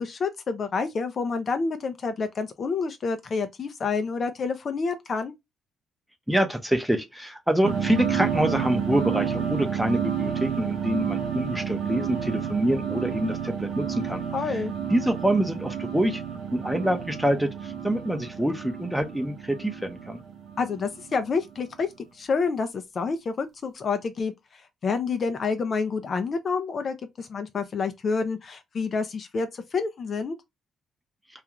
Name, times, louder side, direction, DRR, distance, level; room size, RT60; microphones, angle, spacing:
voice 1, 0.0-5.3 14.3-14.7 20.6-21.9 22.1-30.4, left 4 dB, 45° left, 0.4 m, -28 dB
voice 2, 6.3-14.2 14.9-16.2 16.5-20.2, right 1 dB, 5° right, 0.7 m, -26 dB
sound 1, 7.6-21.6, right 7 dB, 70° right, 0.6 m, -31 dB
2.4 x 2.3 x 2.9 m
cardioid pair, 90°, 0 cm